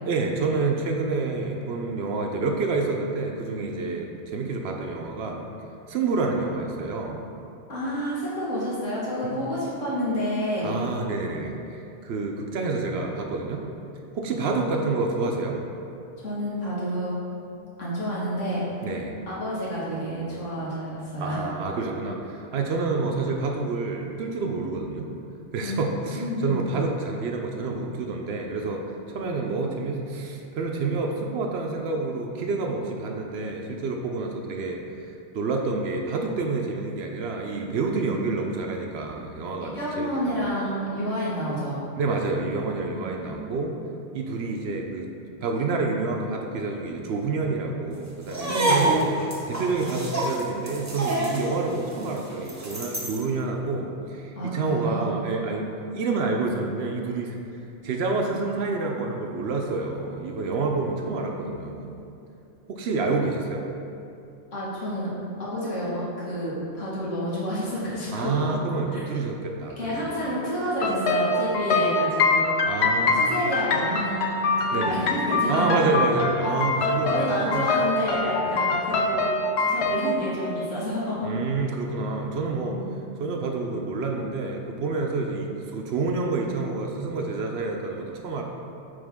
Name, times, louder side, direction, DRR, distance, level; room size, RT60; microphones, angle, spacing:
voice 1, 0.0-5.5 5.9-7.2 9.2-9.4 10.6-13.6 14.1-15.6 18.8-19.2 21.2-25.1 25.5-40.5 42.0-43.8 44.1-45.1 45.4-49.0 49.4-57.4 57.8-62.1 62.7-63.7 68.1-70.2 72.6-73.3 74.7-75.0 75.5-77.7 78.4-78.6 81.2-82.8 83.2-88.4, right 3 dB, 65° right, 2 dB, 0.8 m, -28 dB
voice 2, 7.7-10.7 16.2-17.1 17.8-18.6 19.3-21.5 25.6-25.9 26.1-26.6 39.6-41.8 42.9-43.5 48.4-49.0 54.4-55.1 61.4-61.7 64.5-65.1 65.4-68.3 68.9-69.0 69.8-72.6 73.2-74.4 74.6-75.8 76.8-79.3 79.6-81.3 82.6-83.0, equal, 85° left, -7 dB, 1.9 m, -29 dB
sound 1, 48.2-53.2, right 1 dB, 20° right, 0.5 m, -27 dB
sound 2, 70.8-80.2, left 3 dB, 65° left, 0.8 m, -24 dB
8.8 x 3.4 x 3.6 m, 2.7 s
omnidirectional pair, 1.2 m